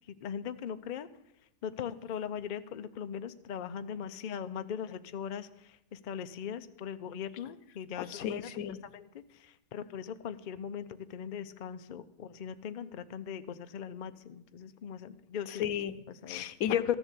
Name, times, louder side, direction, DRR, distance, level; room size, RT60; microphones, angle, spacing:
voice 1, 0.1-1.1 1.6-15.6 16.1-16.4, left 8 dB, 90° left, 10 dB, 0.4 m, -40 dB
voice 2, 8.0-8.8 15.5-17.0, left 10 dB, 70° left, 13 dB, 1.1 m, -32 dB
13.5 x 7.2 x 8.2 m, 0.83 s
omnidirectional pair, 1.6 m